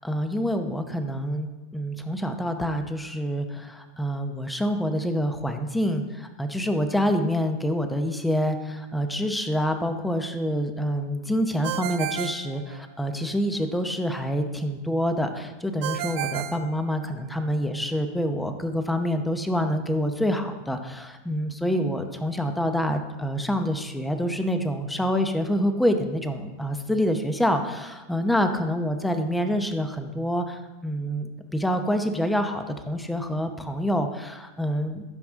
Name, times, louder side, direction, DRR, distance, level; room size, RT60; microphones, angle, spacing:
voice 1, 0.0-35.0, equal, 5° left, 7 dB, 0.7 m, -27 dB
Ringtone, 11.6-13.3 15.8-17.5, right 12 dB, 55° right, 0.6 m, -33 dB
15.0 x 6.0 x 3.6 m, 1.1 s
supercardioid pair, 155°, 0 cm